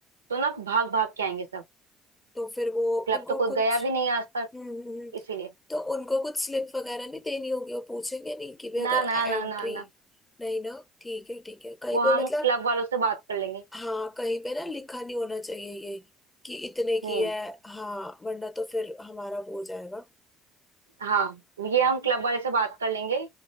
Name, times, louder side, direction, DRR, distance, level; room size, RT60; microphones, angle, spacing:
voice 1, 0.3-1.6 3.1-4.5 5.3-5.5 8.8-9.8 11.9-13.6 17.0-17.3 21.0-23.3, right 5 dB, 80° right, 0.4 m, -27 dB
voice 2, 2.3-3.8 4.5-5.2 5.7-9.9 10.4-12.5 13.7-16.1 16.4-20.1, left 2 dB, 15° left, 0.6 m, -32 dB
2.7 x 2.0 x 3.1 m
figure-of-eight pair, 50°, 0 cm